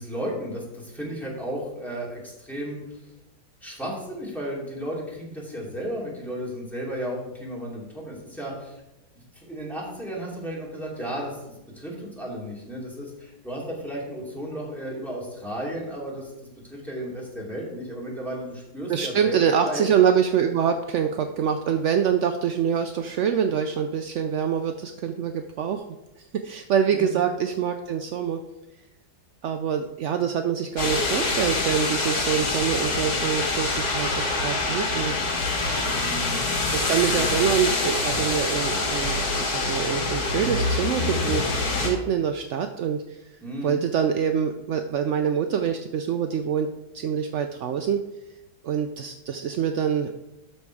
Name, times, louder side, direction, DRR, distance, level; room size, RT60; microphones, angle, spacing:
voice 1, 0.0-3.0 3.6-8.8 9.1-16.3 16.7-19.9 26.9-27.2 35.9-36.4 37.0-37.3 43.4-43.8, equal, ahead, -5 dB, 2.8 m, -34 dB
voice 2, 18.9-25.8 26.2-28.4 29.4-35.1 36.7-43.2 43.6-46.7 46.9-48.0 48.6-50.1, right 8 dB, 70° right, 6 dB, 0.7 m, -25 dB
sound 1, 30.8-41.9, left 3 dB, 65° left, 2.2 m, -25 dB
12.5 x 4.4 x 4.7 m, 0.94 s
omnidirectional pair, 1.8 m